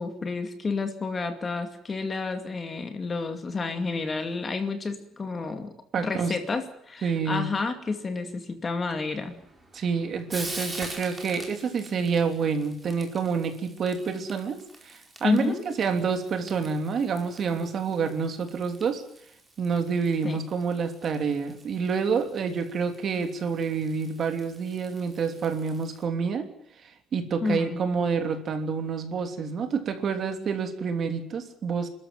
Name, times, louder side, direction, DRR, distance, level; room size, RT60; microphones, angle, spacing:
voice 1, 0.0-9.4 15.2-15.6 20.2-20.4 27.4-27.8, left 4 dB, 20° left, 7 dB, 2.3 m, -30 dB
voice 2, 5.9-6.3 7.0-7.5 9.7-14.6 14.8-19.0 19.6-26.5 27.1-31.9, right 5 dB, 40° right, 6 dB, 3.1 m, -28 dB
Frying (food), 9.1-26.0, right 2 dB, 10° right, 4.7 m, -45 dB
29.0 x 13.5 x 9.3 m, 0.72 s
cardioid pair, 170°, 0 cm